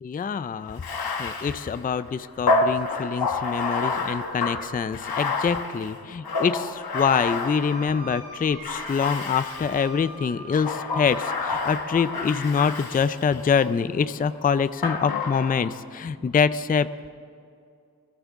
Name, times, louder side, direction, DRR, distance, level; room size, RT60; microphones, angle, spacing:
voice 1, 0.0-0.8 1.2-16.9, left 6 dB, 25° left, 14 dB, 0.4 m, -25 dB
Bathtub (filling or washing), 0.7-8.1 8.6-9.9 10.5-13.7 14.8-15.8, left 3 dB, 80° left, 1.3 m, -29 dB
Wind instrument woodwind instrument, 7.5-11.9, right 1 dB, 80° right, 3.6 m, -41 dB
21.5 x 14.5 x 3.6 m, 2.4 s
wide cardioid pair, 95°, 36 cm